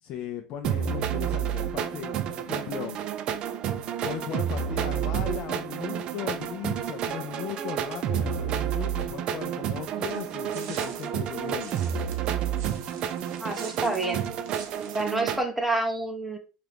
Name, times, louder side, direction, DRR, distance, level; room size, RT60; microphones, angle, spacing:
voice 1, 0.0-3.0 4.0-11.7, left 9 dB, 50° left, 0.4 m, -37 dB
sound 1, 0.6-15.4, right 9 dB, 45° right, 0.3 m, -30 dB
sound 2, 10.1-15.0, right 6 dB, 75° right, 0.7 m, -46 dB
voice 2, 13.4-14.3 14.9-16.4, right 2 dB, 5° right, 0.6 m, -28 dB
2.8 x 2.4 x 3.4 m
supercardioid pair, 120°, 2 cm